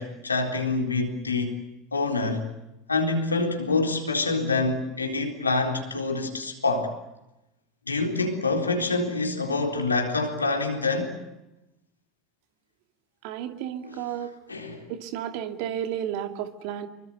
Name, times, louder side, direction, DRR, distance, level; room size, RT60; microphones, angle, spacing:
voice 1, 0.0-1.6 1.9-2.5 2.9-6.9 7.9-11.1 13.8-14.1 14.5-14.8, left 3 dB, 85° left, 4.0 m, -26 dB
voice 2, 13.2-14.3 14.9-16.9, right 10 dB, 60° right, 2.5 m, -32 dB
26.5 x 24.0 x 8.0 m
figure-of-eight pair, 75°, 0 cm